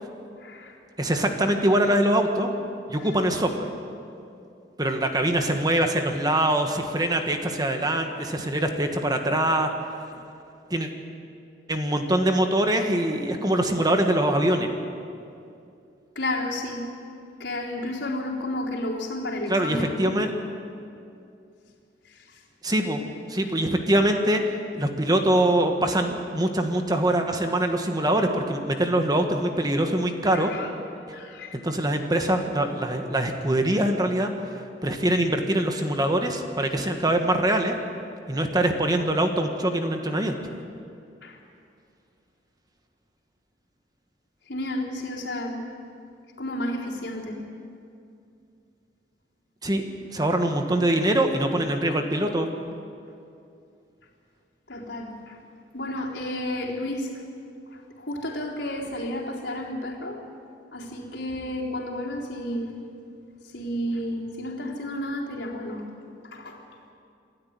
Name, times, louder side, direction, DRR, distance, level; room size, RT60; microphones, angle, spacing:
voice 1, 0.4-0.8 1.1-1.2 3.0-3.5 10.1-10.2 16.2-17.0 17.4-20.1 22.1-22.4 22.7-22.9 30.3-31.6 32.1-32.3 35.8-35.9 38.6-38.8 41.2-41.4 44.5-45.7 46.4-47.5 50.9-51.1 54.7-55.4 55.7-57.2 57.7-60.2 60.7-62.8 63.4-65.8 66.2-66.6, left 1 dB, 85° left, -2 dB, 3.9 m, -32 dB
voice 2, 1.0-2.5 2.9-3.7 4.8-9.7 10.7-10.9 11.7-14.7 19.5-20.3 22.6-23.0 23.3-24.4 24.7-30.5 31.5-34.3 34.8-37.7 38.3-40.3 49.6-49.8 50.1-52.5, right 1 dB, 20° right, 5 dB, 1.6 m, -23 dB
27.5 x 13.0 x 9.7 m, 2.5 s
head